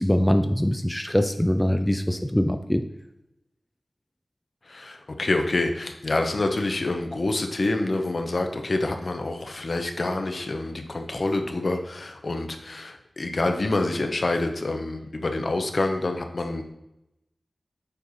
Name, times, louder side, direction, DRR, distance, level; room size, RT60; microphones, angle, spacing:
voice 1, 0.0-2.8, equal, 10° left, 7 dB, 0.5 m, -23 dB
voice 2, 4.7-16.6, left 2 dB, 60° left, 5 dB, 0.9 m, -27 dB
7.9 x 4.6 x 4.1 m, 0.86 s
cardioid pair, 45°, 0 cm